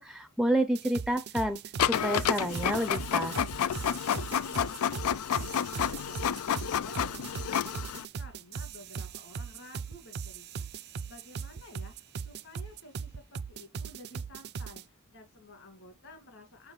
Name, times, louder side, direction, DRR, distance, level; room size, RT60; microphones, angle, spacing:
voice 1, 0.0-1.6 1.9-3.4, right 1 dB, ahead, 0.5 m, -29 dB
sound 1, 0.7-14.8, right 5 dB, 50° right, 0.5 m, -39 dB
Printer, 1.8-8.0, left 9 dB, 90° left, 0.4 m, -30 dB
voice 2, 4.4-7.8 8.1-10.7 11.1-16.7, left 1 dB, 60° left, 2.6 m, -52 dB
6.9 x 5.2 x 4.0 m
head